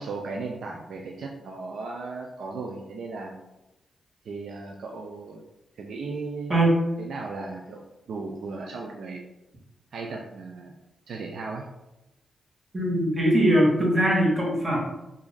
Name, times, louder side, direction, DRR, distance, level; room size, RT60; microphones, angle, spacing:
voice 1, 0.0-3.4 4.3-5.4 5.8-6.6 7.0-9.2 9.9-10.7 11.1-11.7, right 3 dB, 75° right, 0 dB, 0.4 m, -36 dB
voice 2, 12.7-14.8, right 1 dB, 30° right, -4 dB, 1.5 m, -21 dB
2.9 x 2.5 x 3.9 m, 0.94 s
cardioid pair, 60°, 0 cm